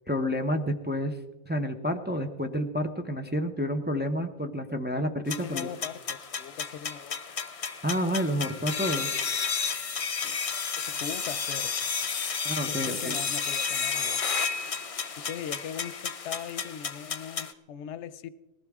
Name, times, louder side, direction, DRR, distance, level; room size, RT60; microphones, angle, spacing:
voice 1, 0.1-1.2 1.5-5.7 7.8-9.1 12.4-13.2, equal, 10° right, 4 dB, 0.6 m, -29 dB
sound 1, 5.3-17.5, left 6 dB, 40° left, 0.6 m, -32 dB
voice 2, 5.4-7.1 10.2-10.4 10.8-11.8 12.7-14.4 15.2-18.3, left 9 dB, 90° left, 15 dB, 0.9 m, -40 dB
20.0 x 15.0 x 3.6 m, 1.2 s
omnidirectional pair, 1.1 m